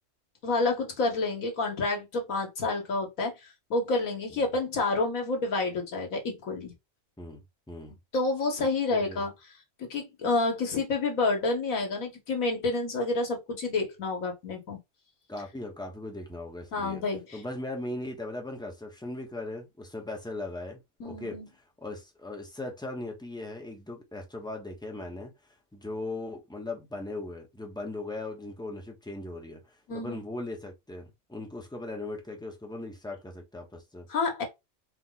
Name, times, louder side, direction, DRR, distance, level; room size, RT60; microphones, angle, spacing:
voice 1, 0.4-3.3 3.7-6.7 8.1-9.3 9.8-14.8 16.7-17.4 21.0-21.5 29.9-30.2 34.1-34.4, left 3 dB, 90° left, 1.8 m, -29 dB
voice 2, 8.9-9.2 15.3-17.0 17.3-21.4 21.8-25.3 25.7-34.1, left 2 dB, 5° left, 0.9 m, -38 dB
4.6 x 2.4 x 3.9 m
omnidirectional pair, 1.4 m